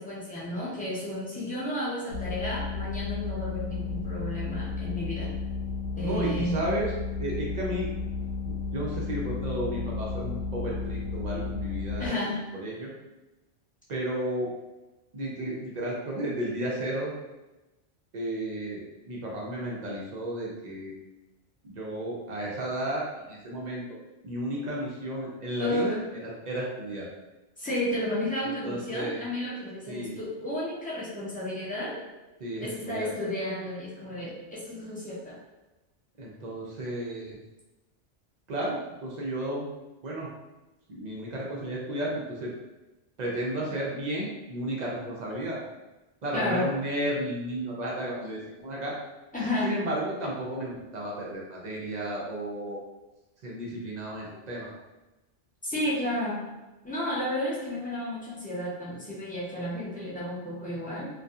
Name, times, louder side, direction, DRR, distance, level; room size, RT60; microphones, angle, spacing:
voice 1, 0.0-5.3 6.0-6.6 12.0-12.4 25.6-26.0 27.6-32.0 32.6-35.4 46.3-46.7 49.3-49.7 55.6-56.4 56.8-61.1, left 1 dB, 10° left, -8 dB, 0.3 m, -32 dB
sound 1, 2.1-12.1, left 4 dB, 60° left, 1.1 m, -33 dB
voice 2, 6.0-6.9 7.2-7.9 8.5-12.2 12.5-12.9 13.9-14.5 15.1-17.1 18.1-20.9 21.6-23.8 24.2-27.1 28.6-29.2 29.9-30.2 32.4-33.1 36.2-37.4 38.5-39.6 40.0-40.3 40.9-42.5 43.2-45.6 46.2-48.9 49.6-52.8 53.4-54.7, right 1 dB, 55° right, -3 dB, 0.4 m, -33 dB
2.6 x 2.3 x 2.3 m, 1.0 s
omnidirectional pair, 1.2 m